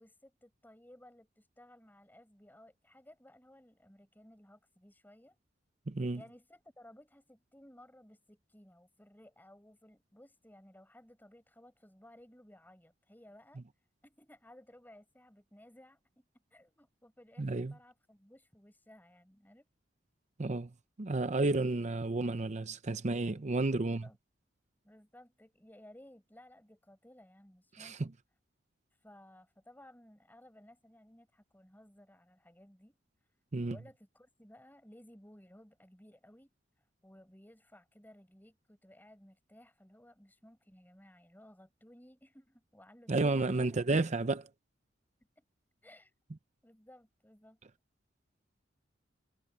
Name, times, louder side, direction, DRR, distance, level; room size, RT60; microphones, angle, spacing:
voice 1, 0.0-5.4 6.1-13.6 14.0-19.7 23.7-24.2 24.8-28.1 29.0-33.0 33.6-36.5 37.0-44.0 45.4-45.5 45.8-46.1 46.6-47.6, left 1 dB, 10° left, 5.7 m, -58 dB
voice 2, 5.9-6.2 17.4-17.7 20.4-20.7 21.0-24.0 27.8-28.1 33.5-33.8 43.1-44.5, right 2 dB, 40° right, 0.7 m, -31 dB
head